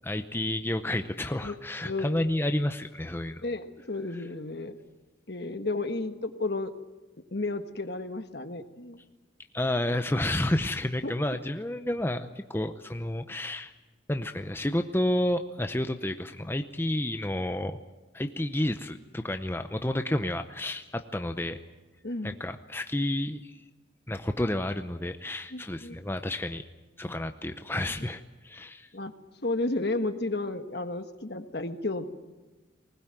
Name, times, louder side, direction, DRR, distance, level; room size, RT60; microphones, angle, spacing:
voice 1, 0.0-3.4 9.5-13.7 14.1-17.8 18.1-21.6 22.2-23.6 24.1-26.6 27.0-28.9, left 1 dB, 10° left, 7 dB, 0.7 m, -30 dB
voice 2, 3.4-4.8 5.3-6.7 7.3-9.0 11.0-11.1 22.0-22.3 25.5-26.0 28.9-29.1 29.4-32.1, left 2 dB, 60° left, 8 dB, 1.5 m, -32 dB
20.0 x 20.0 x 9.0 m, 1.2 s
head